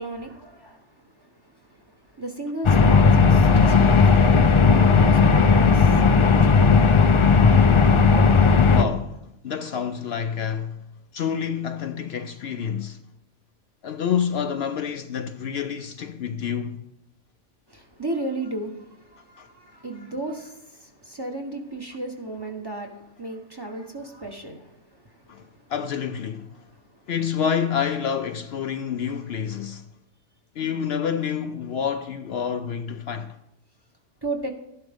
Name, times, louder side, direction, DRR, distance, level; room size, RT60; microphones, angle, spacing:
voice 1, 0.0-6.9 17.7-25.6 26.6-27.0 34.2-34.5, right 2 dB, 20° right, 1.0 m, -35 dB
sound 1, 2.6-8.8, left 5 dB, 45° left, 0.3 m, -16 dB
voice 2, 8.5-10.8 11.1-13.0 13.8-16.8 19.4-19.5 25.3-26.6 27.1-29.9 30.6-33.4, left 7 dB, 65° left, 0.7 m, -28 dB
12.0 x 11.0 x 3.5 m
omnidirectional pair, 1.3 m